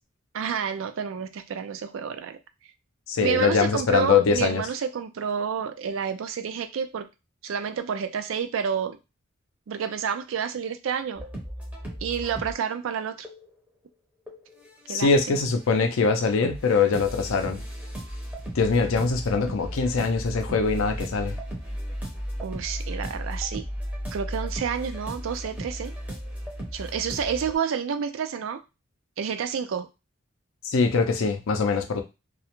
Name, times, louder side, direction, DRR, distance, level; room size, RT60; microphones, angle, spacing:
voice 1, 0.3-2.4 3.2-7.1 7.4-9.0 9.7-11.2 12.0-13.3 14.9-15.4 22.4-23.6 24.1-25.9 26.7-28.6 29.2-29.9, right 7 dB, 65° right, 9 dB, 0.3 m, -29 dB
voice 2, 3.1-4.7 14.9-17.6 18.5-21.4 30.6-32.0, left 4 dB, 75° left, 6 dB, 0.5 m, -23 dB
sound 1, 11.2-12.5 13.2-13.5 14.3-15.3 15.5-27.6, equal, 5° right, 0.6 m, -35 dB
2.4 x 2.0 x 2.9 m, 0.26 s
head